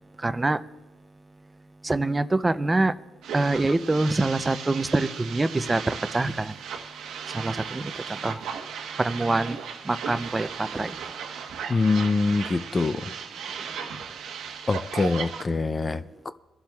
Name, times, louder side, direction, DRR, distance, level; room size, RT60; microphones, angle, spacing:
voice 1, 0.2-0.6 1.8-2.9 3.3-6.5 7.3-7.9 8.2-8.4 9.0-9.6 9.9-10.9, right 2 dB, 20° right, 11 dB, 0.5 m, -25 dB
sound 1, 3.2-15.4, right 7 dB, 80° right, 1.1 m, -36 dB
voice 2, 11.7-13.1 14.7-16.3, left 3 dB, 30° left, 12 dB, 0.5 m, -24 dB
27.0 x 12.0 x 2.4 m, 1.1 s
cardioid pair, 90°, 0 cm